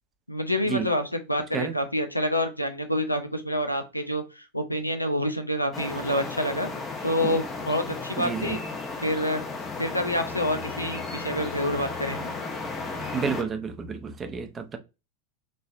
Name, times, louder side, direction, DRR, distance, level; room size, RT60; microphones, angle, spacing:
voice 1, 0.3-6.7 7.0-8.6 9.0-9.4 9.8-12.3, equal, 85° left, 0.6 m, -27 dB
sound 1, 5.7-13.4, left 3 dB, 20° left, 0.9 m, -34 dB
voice 2, 8.2-8.6 13.1-14.8, right 6 dB, 20° right, 0.6 m, -30 dB
4.2 x 3.1 x 2.5 m
figure-of-eight pair, 90°, 0 cm